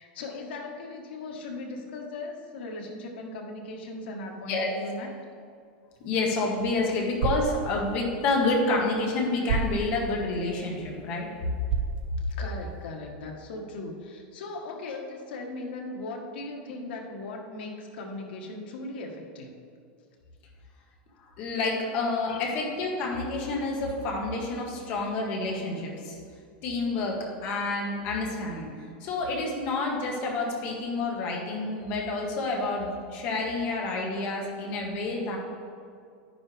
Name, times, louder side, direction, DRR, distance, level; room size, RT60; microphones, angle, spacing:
voice 1, 0.0-5.1 12.3-19.5 22.3-22.4, left 2 dB, 80° left, 1 dB, 1.6 m, -38 dB
sound 1, 5.9-12.9, right 4 dB, 85° right, 1.4 m, -35 dB
voice 2, 6.0-11.3 21.4-26.2 26.6-28.7 29.0-35.4, left 3 dB, 35° left, -1 dB, 1.6 m, -29 dB
10.5 x 9.9 x 3.5 m, 2.3 s
supercardioid pair, 175°, 5 cm